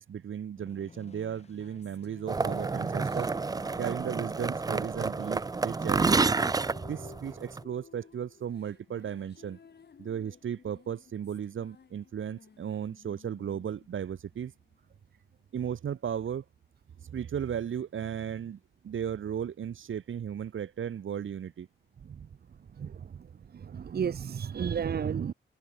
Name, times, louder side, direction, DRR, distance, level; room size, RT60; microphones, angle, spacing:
voice 1, 0.0-3.3 3.8-6.2 6.8-9.6 10.0-14.5 15.5-16.4 17.0-21.7, right 8 dB, 80° right, 2.0 m, -35 dB
sound 1, 0.6-6.3, left 4 dB, 30° left, 6.6 m, -56 dB
sound 2, 1.3-15.0, left 6 dB, 55° left, 6.3 m, -56 dB
sound 3, 2.3-7.6, right 4 dB, 20° right, 0.4 m, -29 dB
voice 2, 22.8-23.1 23.5-25.3, right 7 dB, 50° right, 0.9 m, -32 dB
wide cardioid pair, 165°, 20 cm